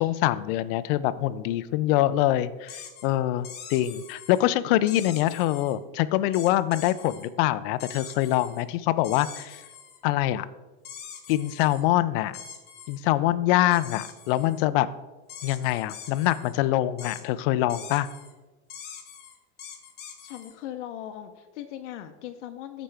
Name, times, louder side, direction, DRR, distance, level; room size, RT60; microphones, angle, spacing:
voice 1, 0.0-9.6 10.0-10.5 11.3-12.4 12.9-14.9 15.4-18.1, left 14 dB, 55° left, 13 dB, 0.5 m, -24 dB
sound 1, 2.7-3.1 3.4-4.4 4.9-5.7 6.3-7.3 7.8-8.6 9.0-10.0 10.8-11.8 12.3-13.0 13.7-14.6 15.3-16.5 17.0-17.2 17.7-18.3 18.7-20.5, left 7 dB, 30° left, 1.1 m, -43 dB
voice 2, 20.2-22.8, left 11 dB, 85° left, 7 dB, 0.7 m, -39 dB
13.5 x 5.1 x 3.4 m, 1.2 s
supercardioid pair, 150°, 35 cm